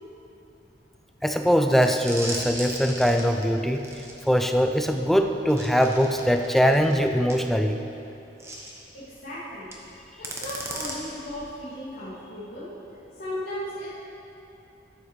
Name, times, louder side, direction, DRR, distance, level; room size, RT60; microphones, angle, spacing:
voice 1, 1.2-3.8 4.3-7.8, equal, ahead, 5 dB, 0.3 m, -22 dB
sound 1, 1.7-7.4 8.4-8.8 9.6-9.9 10.2-11.5, right 1 dB, 15° right, 0.9 m, -38 dB
voice 2, 8.9-9.7 10.2-12.7 13.2-13.9, left 1 dB, 75° left, -14 dB, 2.3 m, -36 dB
12.5 x 7.5 x 3.2 m, 2.9 s
head